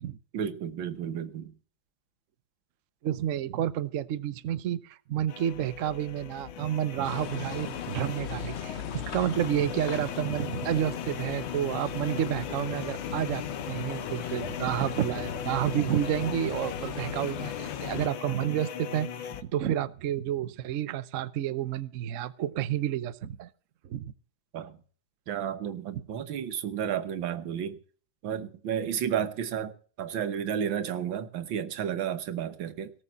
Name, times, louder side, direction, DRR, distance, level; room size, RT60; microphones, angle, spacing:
voice 1, 0.3-1.5 24.5-24.8 25.3-27.8 28.2-32.9, right 9 dB, 85° right, 1.9 m, -32 dB
voice 2, 3.0-23.5 23.8-24.1, right 11 dB, 60° right, 0.9 m, -30 dB
sound 1, 5.3-19.4, left 8 dB, 80° left, 1.8 m, -39 dB
sound 2, 7.0-18.1, left 8 dB, 55° left, 0.7 m, -38 dB
18.0 x 6.6 x 7.2 m
omnidirectional pair, 2.1 m